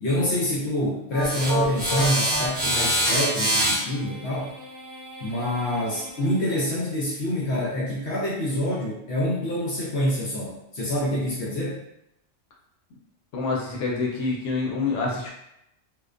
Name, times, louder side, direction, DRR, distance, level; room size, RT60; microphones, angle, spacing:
voice 1, 0.0-4.5 5.2-11.8, left 1 dB, 65° left, -5 dB, 0.8 m, -26 dB
sound 1, 1.1-6.3, right 1 dB, 25° right, 0.7 m, -26 dB
voice 2, 13.3-15.3, left 3 dB, 90° left, -2 dB, 1.0 m, -27 dB
2.4 x 2.1 x 2.4 m, 0.81 s
omnidirectional pair, 1.3 m